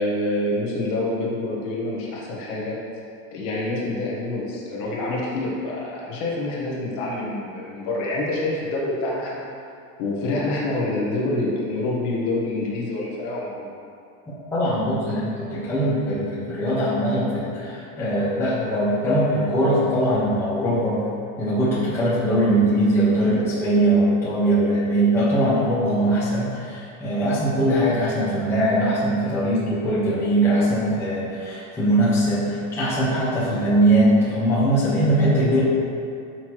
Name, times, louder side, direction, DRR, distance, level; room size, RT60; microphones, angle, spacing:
voice 1, 0.0-2.7 3.3-9.5 10.0-13.8, left 2 dB, 30° left, -4 dB, 1.4 m, -26 dB
voice 2, 14.3-21.0 21.4-35.6, right 1 dB, 5° left, -11 dB, 1.3 m, -21 dB
12.5 x 6.0 x 3.2 m, 2.5 s
supercardioid pair, 175°, 41 cm